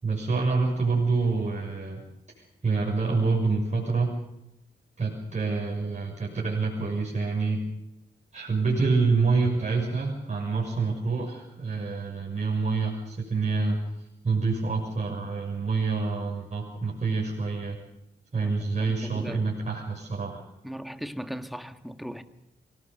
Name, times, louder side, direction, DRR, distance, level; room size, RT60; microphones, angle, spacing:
voice 1, 0.0-2.0 2.4-4.2 5.0-7.6 8.3-17.8 18.3-20.4, right 4 dB, 40° right, 6.4 m, -27 dB
voice 2, 18.9-19.5 20.6-22.2, equal, ahead, 1.8 m, -38 dB
25.0 x 18.5 x 6.9 m
cardioid pair, 55°, 19 cm